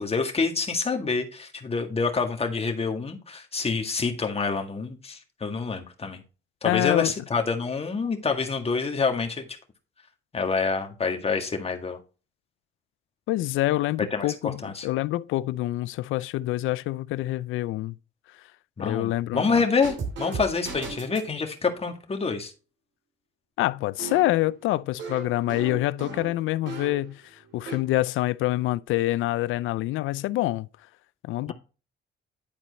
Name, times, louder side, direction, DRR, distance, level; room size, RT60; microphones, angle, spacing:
voice 1, 0.0-6.2 6.6-9.5 10.3-12.0 14.1-14.9 18.8-22.5 31.5-31.6, left 4 dB, 30° left, 1.8 m, -27 dB
voice 2, 6.6-7.1 13.3-14.6 14.8-18.0 18.8-19.4 23.6-30.7 31.2-31.5, left 16 dB, 85° left, 0.4 m, -26 dB
sound 1, 19.8-21.3 24.0-27.1 27.4-27.8, right 4 dB, 70° right, 2.8 m, -37 dB
10.5 x 4.3 x 4.1 m
cardioid pair, 90°, 20 cm